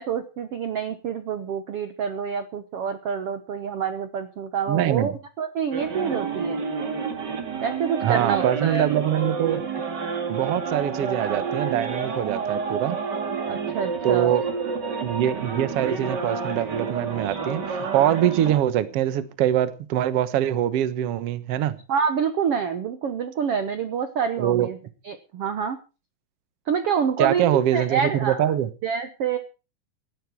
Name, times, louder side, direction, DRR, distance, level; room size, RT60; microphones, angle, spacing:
voice 1, 0.0-6.6 7.6-8.9 13.5-14.3 21.9-24.8 25.0-25.8 26.7-28.5 28.8-29.4, right 7 dB, 90° right, 10 dB, 1.3 m, -27 dB
voice 2, 4.7-5.2 8.0-9.6 10.3-13.0 14.0-14.4 15.0-21.8 24.4-24.7 27.2-28.7, right 11 dB, 70° right, 13 dB, 1.4 m, -23 dB
sound 1, 5.7-18.6, right 5 dB, 35° right, 2.1 m, -29 dB
18.0 x 11.5 x 4.6 m, 0.33 s
omnidirectional pair, 4.5 m